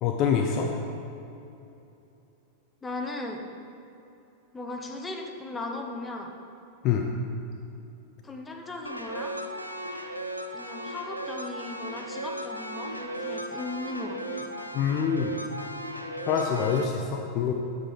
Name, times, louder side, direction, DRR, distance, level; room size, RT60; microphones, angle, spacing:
voice 1, 0.0-0.7 6.8-7.1 14.7-15.3 16.3-17.5, left 7 dB, 40° left, 2 dB, 0.6 m, -25 dB
voice 2, 2.8-3.4 4.5-6.3 8.2-9.4 10.5-14.4, left 2 dB, 15° left, 2 dB, 0.9 m, -37 dB
sound 1, 8.8-16.8, right 1 dB, 90° right, 0.5 m, -36 dB
8.1 x 7.6 x 3.8 m, 2.8 s
figure-of-eight pair, 90°, 0 cm